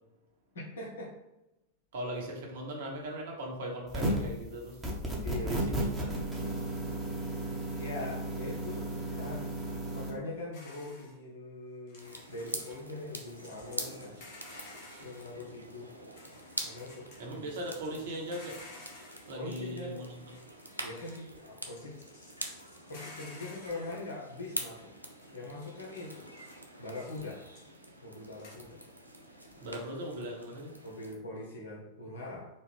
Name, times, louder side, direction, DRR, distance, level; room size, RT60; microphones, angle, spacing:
voice 1, 0.5-1.1 5.2-5.6 7.7-9.5 9.9-14.2 15.0-15.9 16.6-17.5 19.3-20.2 20.8-22.0 22.9-24.9 25.3-26.3 26.8-27.4 28.0-28.8 30.8-32.4, left 2 dB, 65° left, -3 dB, 1.3 m, -42 dB
voice 2, 1.9-4.8 5.4-6.1 14.2-14.3 14.5-15.0 17.2-18.6 19.3-20.1 29.6-30.7, right 1 dB, 60° right, -1 dB, 1.1 m, -39 dB
sound 1, 3.9-4.3 4.8-10.1, right 1 dB, 10° right, 1.0 m, -34 dB
sound 2, 10.5-11.1 11.9-12.8 13.2-15.3 16.0-17.2 17.5-19.3 20.1-21.4 21.7-24.0 25.2-25.3 25.6-26.6 26.9-27.2 27.5-27.7 28.4-28.5, left 2 dB, 50° left, 1.0 m, -53 dB
sound 3, 12.0-31.1, right 1 dB, 90° left, 0.5 m, -45 dB
4.2 x 2.4 x 3.6 m, 0.93 s
figure-of-eight pair, 90°, 0 cm